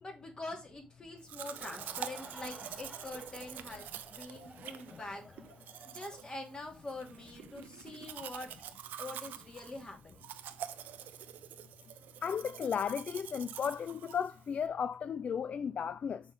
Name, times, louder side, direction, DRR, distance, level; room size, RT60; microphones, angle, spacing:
voice 1, 0.0-5.2 5.9-8.5 9.0-10.3, left 2 dB, 30° left, 2.7 m, -45 dB
Laughter / Crowd, 1.1-7.4, equal, ahead, 2.3 m, -54 dB
Domestic sounds home sounds, 1.3-14.7, right 11 dB, 85° right, 0.5 m, -46 dB
voice 2, 12.2-16.2, left 7 dB, 55° left, 0.3 m, -34 dB
6.0 x 3.7 x 5.1 m
cardioid pair, 70°, 3 cm